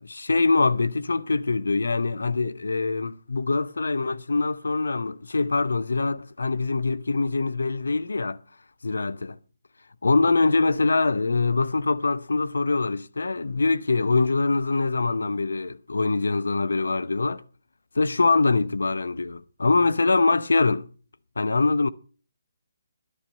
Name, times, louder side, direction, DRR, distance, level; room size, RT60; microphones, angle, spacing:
voice 1, 0.0-8.4 8.8-9.3 10.0-17.4 17.9-20.9 21.4-21.9, left 3 dB, 85° left, 0.7 m, -23 dB
11.5 x 10.0 x 5.3 m
hypercardioid pair, 150°, 0 cm